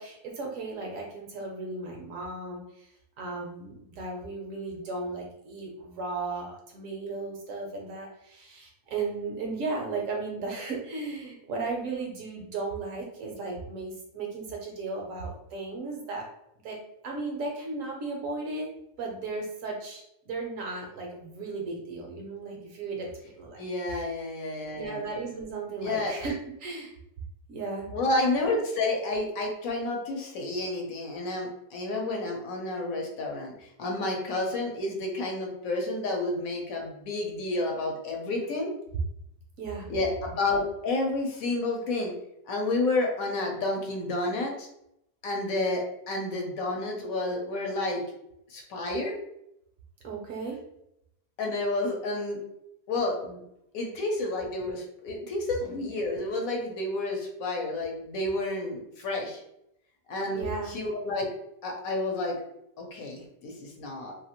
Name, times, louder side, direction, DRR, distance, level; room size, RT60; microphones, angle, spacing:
voice 1, 0.0-2.9 3.2-16.3 16.6-16.8 17.0-18.7 19.0-23.6 23.9-24.0 24.7-26.9 27.5-27.9 39.6-39.9 50.0-50.6 60.3-60.7, right 3 dB, 65° right, 0 dB, 0.9 m, -35 dB
voice 2, 23.6-25.0 25.8-26.1 27.9-38.7 39.9-42.1 42.5-44.7 45.2-48.0 48.5-49.2 51.4-52.4 52.9-53.4 53.7-59.4 60.1-61.3 61.6-62.4 62.8-64.1, left 2 dB, 70° left, 1 dB, 1.0 m, -30 dB
2.7 x 2.4 x 2.8 m, 0.79 s
omnidirectional pair, 1.6 m